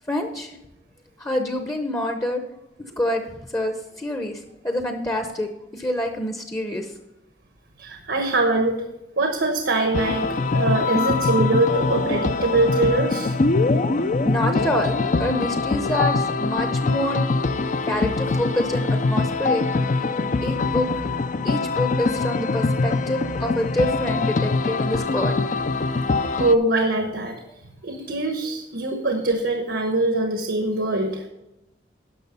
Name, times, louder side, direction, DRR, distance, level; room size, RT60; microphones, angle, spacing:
voice 1, 0.1-0.6 1.2-2.4 3.0-6.9 14.2-17.2 17.9-19.6 20.4-20.9 21.4-25.4, left 1 dB, 20° left, 5 dB, 0.8 m, -27 dB
voice 2, 7.8-8.8 9.2-13.3 26.4-27.4 27.8-31.2, right 2 dB, 80° right, 4 dB, 1.2 m, -23 dB
sound 1, 9.9-26.5, left 3 dB, 45° left, 0.5 m, -23 dB
11.0 x 6.4 x 5.4 m, 0.92 s
head